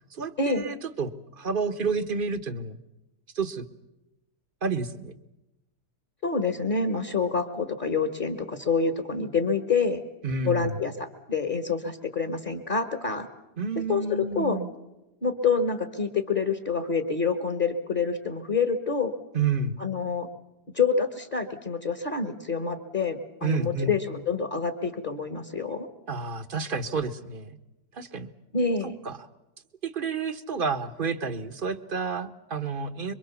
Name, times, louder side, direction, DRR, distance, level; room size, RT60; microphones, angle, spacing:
voice 1, 0.1-2.8 3.3-3.7 4.6-5.1 10.2-10.8 13.6-14.7 19.3-19.8 23.4-23.9 26.1-27.6 27.9-28.3 29.0-29.2 29.8-33.1, right 4 dB, 35° right, 12 dB, 1.2 m, -30 dB
voice 2, 6.2-10.0 10.4-13.3 13.9-14.6 15.2-19.1 19.8-20.3 20.7-25.9 28.5-28.9, left 5 dB, 30° left, 8 dB, 1.7 m, -27 dB
26.0 x 23.5 x 7.1 m, 0.96 s
omnidirectional pair, 1.7 m